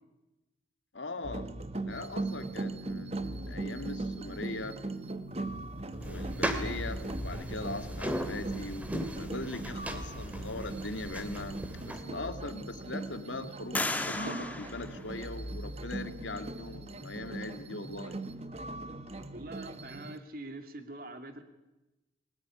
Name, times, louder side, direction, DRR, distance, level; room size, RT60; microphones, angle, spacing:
voice 1, 0.9-1.5 1.8-4.8 6.0-18.2, left 2 dB, 80° left, 8 dB, 2.3 m, -40 dB
sound 1, 1.2-20.2, right 2 dB, 35° right, 1.2 m, -39 dB
sound 2, 6.0-12.0, equal, 10° right, 2.5 m, -37 dB
sound 3, 12.2-12.8 13.7-15.7, left 2 dB, 10° left, 1.5 m, -36 dB
voice 2, 19.3-21.4, right 2 dB, 50° right, 7 dB, 2.8 m, -44 dB
24.0 x 18.5 x 10.0 m, 1.0 s
head